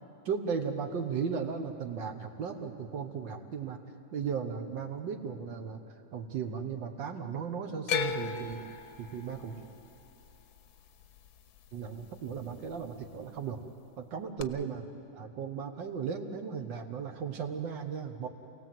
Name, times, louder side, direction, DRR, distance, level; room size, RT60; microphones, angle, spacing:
voice 1, 0.2-3.8 4.1-5.8 6.1-8.6 9.0-9.6 11.7-13.6 14.0-14.8 15.1-18.3, right 6 dB, 75° right, 4 dB, 1.8 m, -36 dB
sound 1, 7.9-12.1 12.4-13.1 14.4-14.5, left 7 dB, 65° left, 1.2 m, -37 dB
28.5 x 17.5 x 7.6 m, 2.7 s
omnidirectional pair, 2.0 m